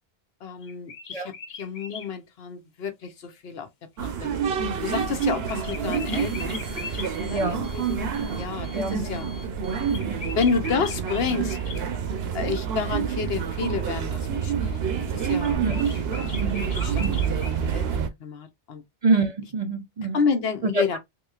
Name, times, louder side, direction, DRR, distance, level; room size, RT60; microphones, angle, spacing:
voice 1, 0.4-1.3 1.6-3.7 4.0-4.3 4.8-6.6 7.2-9.3 10.4-11.6 12.3-15.6 16.5-16.9 17.4-18.8 20.1-21.0, left 5 dB, 75° left, 1.0 m, -30 dB
sound 1, 0.6-2.1 5.2-7.1 9.9-11.8 15.4-17.6, left 5 dB, 50° left, 0.8 m, -39 dB
sound 2, 4.0-18.1, right 7 dB, 75° right, 0.9 m, -28 dB
Alarm, 4.8-11.1, left 3 dB, 20° left, 1.1 m, -50 dB
voice 2, 7.3-7.7 8.7-9.0 10.0-10.2 15.6-15.8 16.4-16.7 17.0-17.1 19.0-20.2 20.6-20.8, right 3 dB, 45° right, 0.5 m, -26 dB
3.7 x 3.0 x 2.3 m
omnidirectional pair, 1.0 m